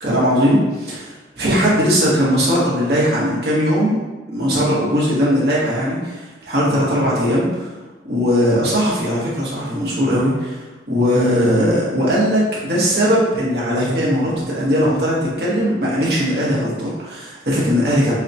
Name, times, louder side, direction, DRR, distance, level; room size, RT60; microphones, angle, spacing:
voice 1, 0.0-4.0 4.3-7.7 8.0-18.1, equal, 55° right, -7 dB, 1.2 m, -19 dB
5.4 x 2.2 x 2.7 m, 1.2 s
head